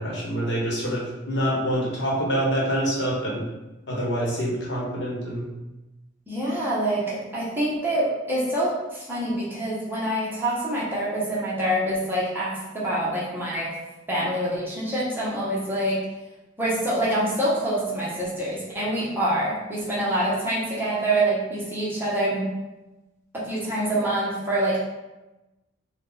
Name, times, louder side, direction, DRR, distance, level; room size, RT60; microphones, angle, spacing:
voice 1, 0.0-3.4 3.9-5.5, equal, 65° left, -4 dB, 1.1 m, -26 dB
voice 2, 6.3-13.7 14.1-16.0 16.6-22.5 23.3-24.8, right 1 dB, 10° right, -8 dB, 0.9 m, -26 dB
3.7 x 2.3 x 3.9 m, 1.0 s
head